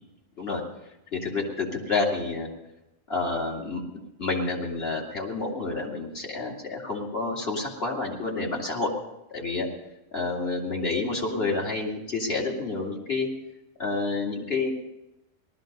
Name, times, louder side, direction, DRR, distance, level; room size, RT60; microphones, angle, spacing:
voice 1, 1.1-2.5 3.1-3.8 4.2-8.9 9.3-9.7 10.1-13.3 13.8-14.7, left 3 dB, 45° left, -1 dB, 2.7 m, -29 dB
18.5 x 13.0 x 5.3 m, 0.94 s
omnidirectional pair, 1.4 m